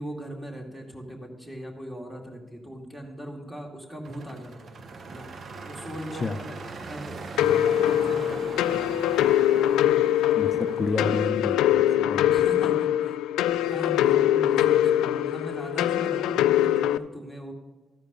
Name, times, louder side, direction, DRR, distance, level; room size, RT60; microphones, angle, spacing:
voice 1, 0.0-4.7 5.1-5.3 5.6-6.6 6.8-7.2 7.5-9.1 10.5-11.0 12.3-13.2 13.7-17.5, equal, 10° right, 0 dB, 2.3 m, -39 dB
sound 1, 4.0-11.3, right 4 dB, 50° right, 0.8 m, -40 dB
sound 2, 7.4-17.0, left 12 dB, 90° left, 0.3 m, -23 dB
voice 2, 10.4-12.3, left 3 dB, 35° left, 6 dB, 0.5 m, -30 dB
13.5 x 5.0 x 6.8 m, 1.2 s
cardioid pair, 90°, 0 cm